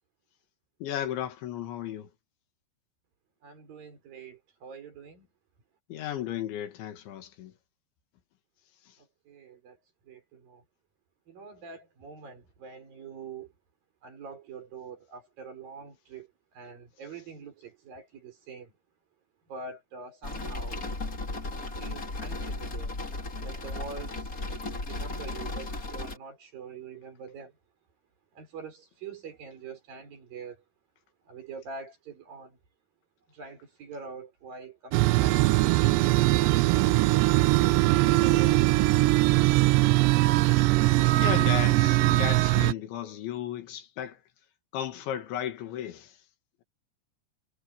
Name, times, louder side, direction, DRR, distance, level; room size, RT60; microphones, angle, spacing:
voice 1, 0.8-2.1 5.9-7.5 41.1-44.2 44.7-46.2, left 11 dB, 80° left, 4.4 m, -34 dB
voice 2, 3.4-5.3 9.0-9.8 10.1-10.6 11.3-13.5 14.0-16.3 16.5-18.7 19.5-20.8 21.8-22.9 23.4-24.4 24.8-27.5 28.3-30.6 31.3-32.6 33.3-36.9 37.8-38.8, right 5 dB, 50° right, 6.8 m, -44 dB
sound 1, 20.2-26.2, left 2 dB, 20° left, 3.1 m, -35 dB
sound 2, 34.9-42.7, right 19 dB, 85° right, 2.7 m, -21 dB
omnidirectional pair, 5.2 m